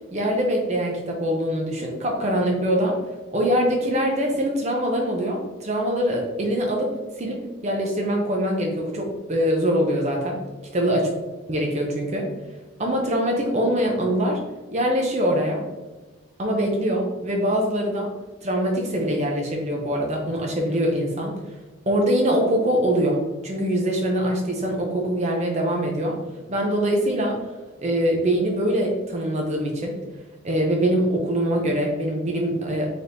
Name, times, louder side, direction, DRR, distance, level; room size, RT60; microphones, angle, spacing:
voice 1, 0.1-3.0 3.3-10.4 10.7-11.1 11.5-12.3 12.8-14.4 14.7-15.6 16.4-18.1 18.4-21.4 21.9-26.2 26.5-27.4 27.8-30.0 30.4-32.9, equal, 30° right, 0 dB, 0.5 m, -23 dB
4.4 x 3.4 x 2.6 m, 1.2 s
head